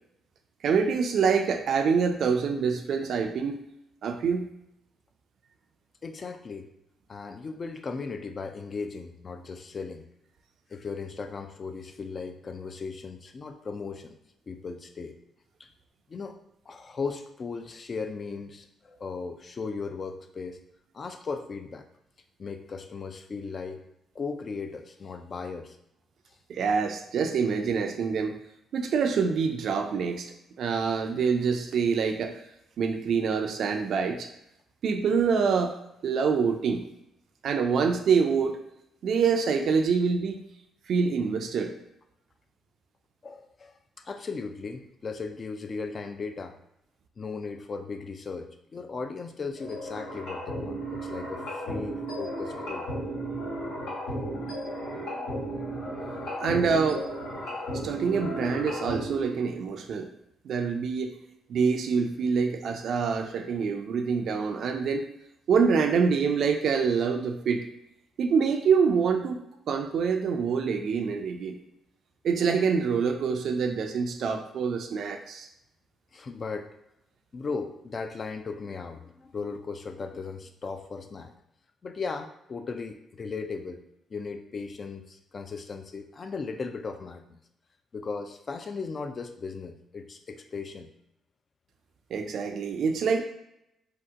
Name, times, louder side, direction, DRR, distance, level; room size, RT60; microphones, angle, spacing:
voice 1, 0.6-3.6 4.0-4.5 26.5-28.4 28.7-30.3 30.6-32.4 32.8-34.3 34.8-35.8 36.0-36.9 37.4-38.6 39.0-40.4 40.9-41.7 56.4-57.0 57.8-60.1 60.4-61.1 61.5-65.0 65.5-67.7 68.2-69.4 69.7-71.6 72.2-75.5 92.1-93.2, right 5 dB, 65° right, 6 dB, 0.4 m, -26 dB
voice 2, 6.0-6.7 7.1-10.1 10.7-14.2 14.5-15.2 15.6-15.7 16.1-16.4 16.7-20.6 20.9-21.9 22.4-23.8 24.1-25.8 43.2-46.6 47.2-52.9 54.9-55.5 76.1-76.7 77.3-81.3 81.8-83.8 84.1-87.2 87.9-90.9, left 4 dB, 40° left, 7 dB, 0.3 m, -37 dB
sound 1, 49.6-59.3, right 1 dB, 90° left, 1.4 m, -34 dB
2.8 x 2.1 x 3.5 m, 0.81 s
cardioid pair, 90°, 0 cm